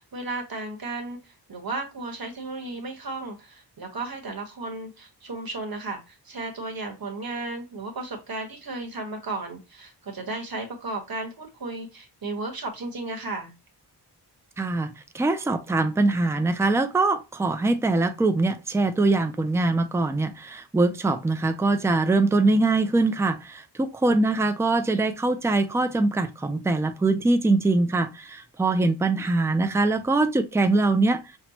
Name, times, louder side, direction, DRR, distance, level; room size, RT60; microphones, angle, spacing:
voice 1, 0.0-13.5 24.1-24.4 29.2-29.3, right 2 dB, 55° right, 1.1 m, -34 dB
voice 2, 14.6-31.2, right 2 dB, 5° right, 0.3 m, -23 dB
5.8 x 2.1 x 2.7 m
wide cardioid pair, 125°, 42 cm